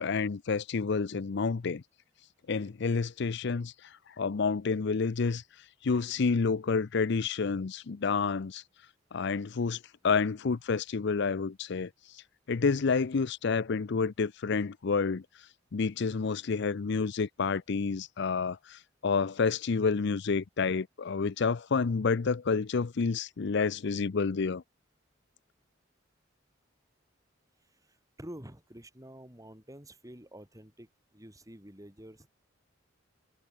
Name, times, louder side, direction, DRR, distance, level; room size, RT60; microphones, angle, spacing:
voice 1, 0.0-1.8 2.5-5.4 5.8-8.6 9.1-12.2 12.5-15.2 15.7-24.6, left 5 dB, 65° left, 0.5 m, -29 dB
voice 2, 27.7-32.3, right 1 dB, 20° right, 6.0 m, -49 dB
head